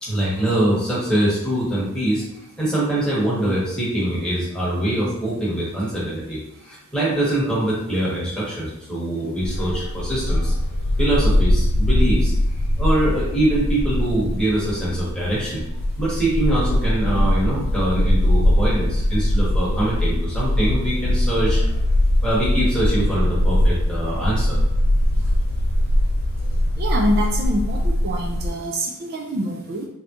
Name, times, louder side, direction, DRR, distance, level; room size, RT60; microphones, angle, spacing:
voice 1, 0.0-2.2 2.6-10.5 11.0-12.3 12.8-15.6 16.0-21.6 22.2-24.6, right 1 dB, 5° left, -8 dB, 1.1 m, -23 dB
Bark, 9.4-28.5, left 1 dB, 60° left, 0.4 m, -21 dB
voice 2, 26.8-29.9, equal, 50° right, 2 dB, 0.3 m, -25 dB
3.5 x 2.7 x 2.4 m, 0.88 s
head